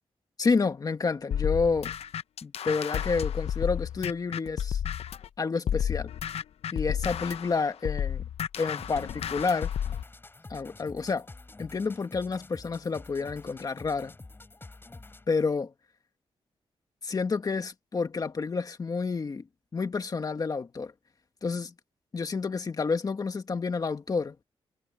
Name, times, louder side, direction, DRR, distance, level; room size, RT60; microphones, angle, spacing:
voice 1, 0.4-1.9 2.4-4.8 5.4-6.1 6.7-8.2 8.6-9.7 10.5-11.3 11.6-14.1 15.3-15.7 17.0-19.4 19.7-20.9 21.4-21.7 22.1-24.4, left 4 dB, 35° left, 1.8 m, -29 dB
sound 1, 1.3-5.3 5.7-10.0, left 9 dB, 80° left, 0.6 m, -31 dB
sound 2, 8.6-15.4, left 2 dB, 20° left, 7.8 m, -48 dB
wide cardioid pair, 130°, 10 cm